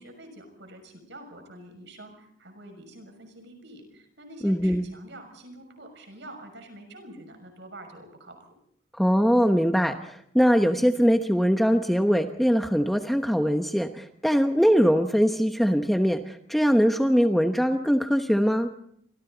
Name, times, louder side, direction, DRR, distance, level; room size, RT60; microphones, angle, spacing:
voice 1, 0.0-8.5, right 1 dB, 60° right, 5 dB, 6.4 m, -46 dB
voice 2, 4.4-4.8 9.0-18.7, equal, ahead, 5 dB, 1.0 m, -22 dB
29.0 x 24.5 x 4.0 m, 0.69 s
head